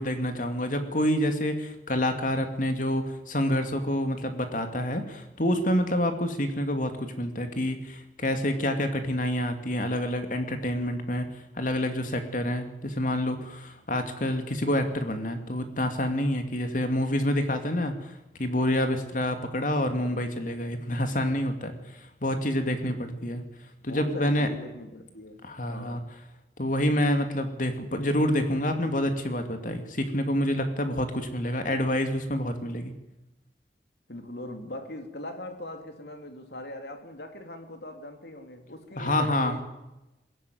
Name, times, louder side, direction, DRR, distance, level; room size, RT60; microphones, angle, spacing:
voice 1, 0.0-11.3 11.6-18.0 18.4-21.8 22.2-23.4 23.8-24.5 25.4-26.0 26.6-32.9 39.0-39.5, left 1 dB, 50° left, 7 dB, 2.7 m, -27 dB
voice 2, 22.7-23.2 23.8-25.4 25.7-26.1 34.1-39.6, left 1 dB, 70° left, 6 dB, 3.0 m, -41 dB
21.5 x 17.0 x 9.6 m, 0.98 s
head